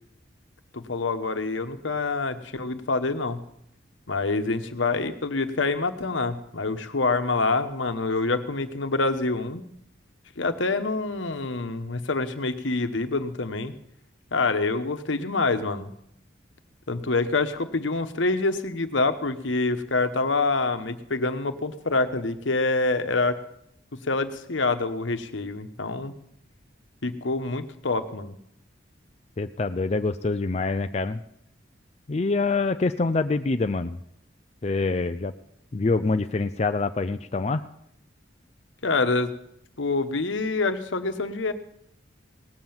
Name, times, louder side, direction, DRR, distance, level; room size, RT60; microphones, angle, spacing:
voice 1, 0.7-3.4 4.1-9.6 10.4-13.7 14.3-15.9 16.9-23.4 24.1-26.1 27.0-28.4 38.8-39.3 39.8-41.5, left 3 dB, 80° left, 8 dB, 1.1 m, -26 dB
voice 2, 29.4-31.2 32.1-34.0 34.6-35.3 35.7-37.6, left 3 dB, 35° left, 8 dB, 0.4 m, -25 dB
18.0 x 7.8 x 7.2 m, 0.74 s
head